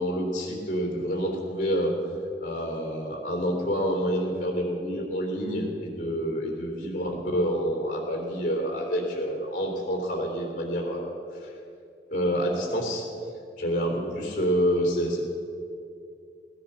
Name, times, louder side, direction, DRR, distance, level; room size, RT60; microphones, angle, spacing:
voice 1, 0.0-1.9 2.4-11.1 11.4-11.5 12.1-13.0 13.6-15.2, equal, 45° left, 1 dB, 3.4 m, -28 dB
16.5 x 10.5 x 6.8 m, 2.5 s
head